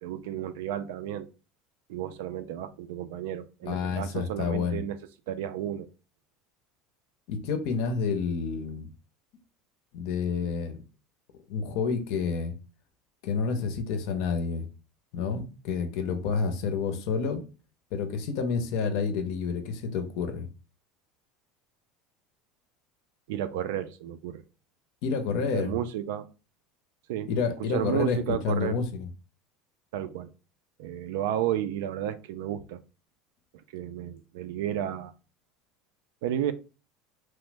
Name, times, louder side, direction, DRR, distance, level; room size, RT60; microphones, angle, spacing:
voice 1, 0.0-1.3 1.9-5.0 5.3-5.9 23.3-24.4 25.5-26.3 27.1-27.3 27.7-28.8 29.9-30.3 30.8-32.8 33.7-35.1 36.2-36.5, right 11 dB, 85° right, 0.3 m, -32 dB
voice 2, 3.6-4.8 7.3-8.9 9.9-10.8 11.5-12.6 13.2-14.6 15.1-17.4 17.9-20.5 25.0-25.7 27.2-29.1, left 5 dB, 55° left, 0.5 m, -29 dB
3.1 x 2.0 x 3.2 m
cardioid pair, 175°, 0 cm